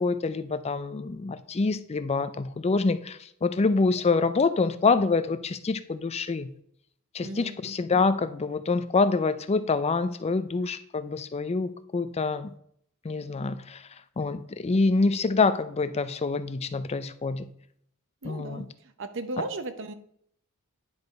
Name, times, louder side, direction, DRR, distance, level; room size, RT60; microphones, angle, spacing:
voice 1, 0.0-6.5 7.1-12.5 13.0-13.8 14.2-17.5 18.2-18.6, left 4 dB, 30° left, 12 dB, 0.4 m, -26 dB
voice 2, 7.2-7.6 18.2-18.7 19.0-19.9, right 2 dB, 60° right, 10 dB, 0.9 m, -35 dB
9.6 x 4.9 x 5.3 m, 0.68 s
head